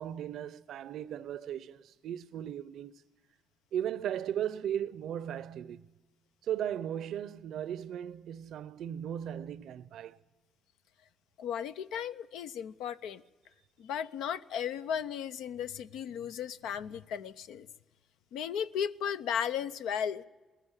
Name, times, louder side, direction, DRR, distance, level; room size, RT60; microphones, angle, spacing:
voice 1, 0.0-3.0 3.7-5.9 6.4-10.2, right 10 dB, 75° right, 0.6 m, -37 dB
voice 2, 11.4-13.2 13.8-17.7 18.3-20.2, left 8 dB, 90° left, 0.6 m, -35 dB
19.5 x 14.0 x 9.9 m
cardioid pair, 90°, 0 cm